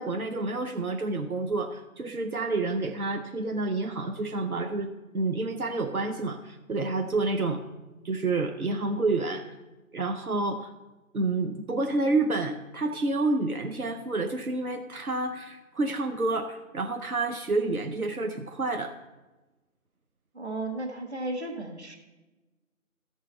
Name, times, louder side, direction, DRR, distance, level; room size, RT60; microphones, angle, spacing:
voice 1, 0.0-7.6 8.0-9.4 9.9-10.7 11.1-18.9, right 3 dB, 85° right, 4 dB, 0.9 m, -29 dB
voice 2, 20.3-22.0, right 2 dB, 50° right, 3 dB, 1.7 m, -34 dB
13.5 x 4.7 x 5.4 m, 1.1 s
figure-of-eight pair, 170°, 42 cm